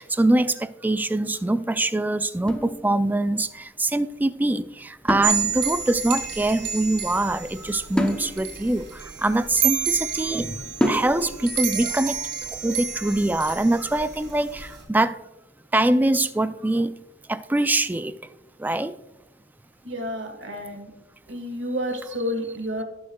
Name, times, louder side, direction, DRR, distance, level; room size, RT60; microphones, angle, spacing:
voice 1, 0.0-15.2 15.7-17.0 17.3-18.1 18.6-19.0, right 2 dB, 10° right, 0.3 m, -24 dB
sound 1, 2.5-3.4 5.1-6.0 8.0-10.0 10.8-11.5, equal, 5° left, 0.8 m, -29 dB
sound 2, 5.2-14.8, right 7 dB, 60° right, 2.5 m, -30 dB
voice 2, 19.8-20.9 21.3-22.8, equal, 80° right, 1.7 m, -30 dB
17.5 x 6.3 x 2.3 m
head